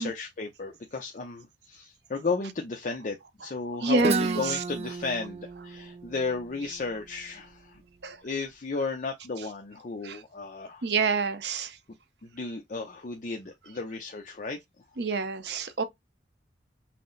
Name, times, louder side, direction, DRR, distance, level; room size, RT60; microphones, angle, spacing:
voice 1, 0.0-7.8 8.2-10.9 12.2-14.6, left 4 dB, 45° left, 0.5 m, -34 dB
voice 2, 3.6-4.6 8.0-8.2 10.0-10.2 10.8-11.8 15.0-15.8, right 3 dB, 65° right, 0.6 m, -27 dB
Guitar, 4.0-7.8, right 5 dB, 35° right, 0.3 m, -34 dB
5.8 x 2.0 x 3.8 m
head